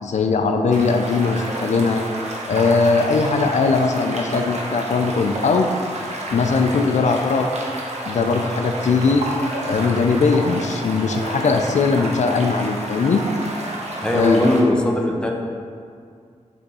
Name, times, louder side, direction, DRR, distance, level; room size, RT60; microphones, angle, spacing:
voice 1, 0.0-2.0 2.5-5.7 6.3-7.5 8.1-9.2 9.7-13.2 14.1-14.4, left 4 dB, 70° left, 4 dB, 0.4 m, -19 dB
sound 1, 0.7-14.6, right 1 dB, 65° right, 0.9 m, -30 dB
voice 2, 14.0-15.3, left 1 dB, 5° left, 0 dB, 0.6 m, -18 dB
6.7 x 3.5 x 4.2 m, 2.2 s
wide cardioid pair, 135°, 12 cm